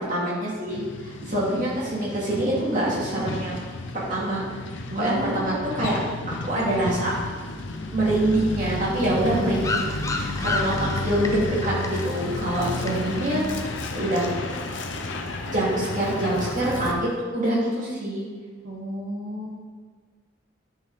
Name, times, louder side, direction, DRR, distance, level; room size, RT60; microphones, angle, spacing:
voice 1, 0.1-4.4 4.9-6.0 6.3-7.1 7.9-13.4 13.9-14.5 15.5-17.1 17.3-18.2, right 1 dB, 40° right, -6 dB, 2.5 m, -25 dB
Truck, 0.7-16.9, left 2 dB, 70° left, 0.8 m, -32 dB
voice 2, 1.2-1.6 4.9-5.6 9.3-9.6 12.6-13.5 18.6-19.5, right 1 dB, 65° right, -4 dB, 1.0 m, -33 dB
sound 1, 9.6-14.0, left 3 dB, 15° left, 0.4 m, -32 dB
10.0 x 5.6 x 4.0 m, 1.5 s
head